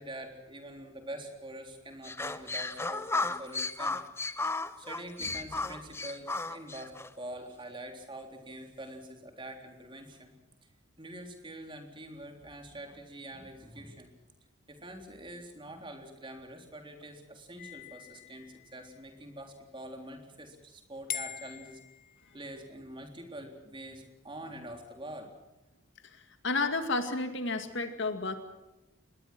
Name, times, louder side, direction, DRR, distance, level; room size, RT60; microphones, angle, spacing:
voice 1, 0.0-4.0 4.8-10.3 11.0-14.1 14.7-21.8 22.3-25.3, right 1 dB, 25° right, 4 dB, 3.7 m, -45 dB
sound 1, 2.0-7.1, left 3 dB, 10° left, 0.9 m, -34 dB
sound 2, 17.6-19.1 21.1-22.7, left 9 dB, 40° left, 1.4 m, -43 dB
voice 2, 26.4-28.3, left 3 dB, 60° left, 8 dB, 2.2 m, -31 dB
26.0 x 21.0 x 6.2 m, 0.99 s
head